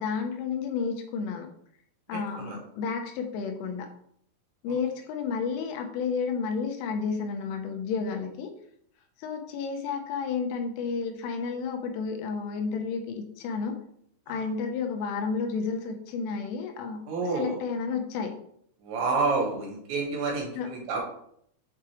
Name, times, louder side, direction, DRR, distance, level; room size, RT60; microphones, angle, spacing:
voice 1, 0.0-1.5 2.1-3.9 4.6-8.5 9.2-13.7 14.3-17.0 17.3-18.4 20.6-20.7, left 5 dB, 90° left, 4 dB, 3.3 m, -31 dB
voice 2, 2.1-2.6 14.3-14.5 17.1-17.6 18.8-21.0, right 4 dB, 70° right, -1 dB, 3.6 m, -29 dB
7.9 x 4.8 x 3.0 m, 0.68 s
omnidirectional pair, 5.6 m